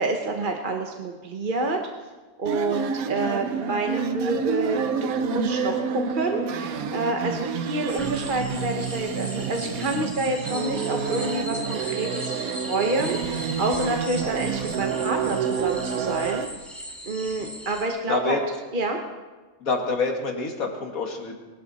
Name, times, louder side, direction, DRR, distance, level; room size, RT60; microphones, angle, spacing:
voice 1, 0.0-1.8 2.4-18.4 18.7-19.0, right 2 dB, 40° right, 2 dB, 1.2 m, -28 dB
sound 1, 2.5-16.5, right 6 dB, 75° right, 1.2 m, -29 dB
sound 2, 7.9-17.8, equal, ahead, 2.7 m, -38 dB
voice 2, 18.1-18.4 19.6-21.4, left 3 dB, 70° left, 2 dB, 2.3 m, -27 dB
22.5 x 12.0 x 4.2 m, 1.3 s
omnidirectional pair, 1.5 m